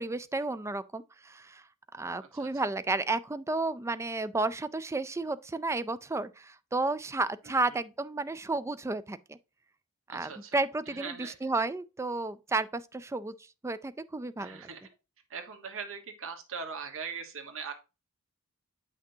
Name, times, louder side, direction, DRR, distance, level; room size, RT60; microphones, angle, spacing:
voice 1, 0.0-1.6 1.9-9.4 10.1-13.3 13.6-14.6, right 3 dB, 15° right, 0.4 m, -32 dB
voice 2, 7.4-7.8 10.1-10.6 10.9-11.4 14.4-14.9 15.3-17.7, right 6 dB, 65° right, 1.3 m, -41 dB
8.3 x 6.0 x 2.7 m
head